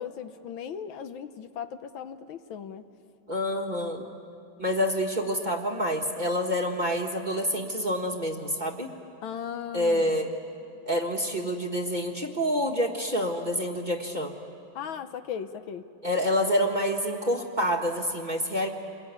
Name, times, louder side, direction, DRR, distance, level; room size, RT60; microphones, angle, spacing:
voice 1, 0.0-2.8 9.2-10.1 14.7-15.8, left 8 dB, 75° left, 10 dB, 1.6 m, -37 dB
voice 2, 3.3-4.1 4.6-8.9 9.7-10.3 10.9-14.3 16.0-18.7, equal, 25° right, 1 dB, 1.4 m, -27 dB
28.0 x 21.5 x 9.5 m, 2.5 s
omnidirectional pair, 2.3 m